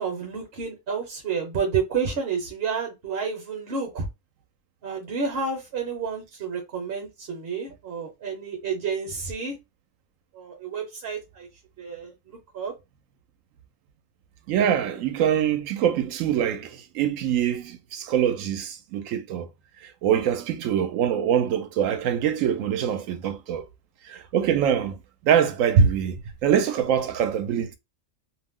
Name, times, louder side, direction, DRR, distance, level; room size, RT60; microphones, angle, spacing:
voice 1, 0.0-4.1 4.8-9.5 10.3-11.5 11.8-12.7, right 5 dB, 55° right, 0.9 m, -30 dB
voice 2, 14.5-19.5 20.0-23.6 24.1-25.0 25.2-26.2 26.4-27.7, right 8 dB, 85° right, 1.0 m, -23 dB
2.6 x 2.0 x 3.5 m
omnidirectional pair, 1.3 m